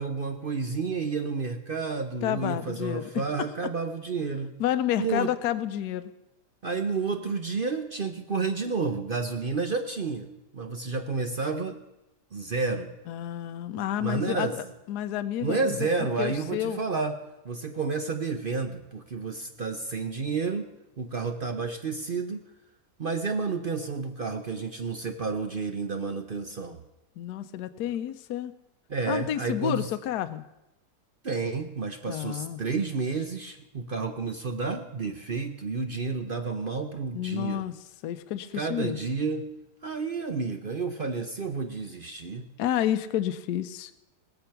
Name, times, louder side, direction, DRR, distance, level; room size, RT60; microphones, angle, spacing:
voice 1, 0.0-4.5 5.0-5.3 6.6-11.8 12.3-12.9 13.7-14.6 15.4-17.2 17.4-20.7 21.0-22.4 23.0-26.8 28.9-29.9 31.2-37.6 38.5-39.5 39.8-42.4, right 4 dB, 45° right, 6 dB, 0.7 m, -30 dB
voice 2, 2.2-3.5 4.6-6.1 13.1-16.8 27.2-28.5 29.1-30.4 32.1-32.6 37.1-39.0 42.6-43.9, left 11 dB, 75° left, 10 dB, 1.2 m, -30 dB
20.5 x 7.0 x 5.8 m, 0.93 s
omnidirectional pair, 1.8 m